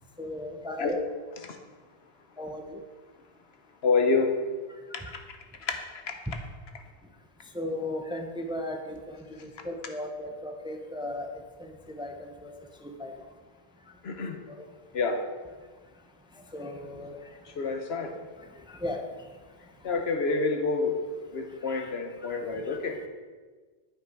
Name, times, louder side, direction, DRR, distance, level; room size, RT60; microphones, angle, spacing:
voice 1, 0.2-1.0 2.4-2.8 7.5-11.3 11.6-11.7 11.9-12.5 12.8-13.1 16.5-17.2 18.8-19.0 21.7-21.9 22.7-22.8, left 1 dB, 5° right, 4 dB, 0.5 m, -36 dB
voice 2, 3.8-4.4 5.1-5.2 5.6-5.7 14.0-14.4 14.9-15.3 17.6-18.2 19.8-21.0 21.3-23.0, left 4 dB, 85° left, 4 dB, 1.2 m, -27 dB
9.6 x 5.6 x 4.6 m, 1.4 s
omnidirectional pair, 1.0 m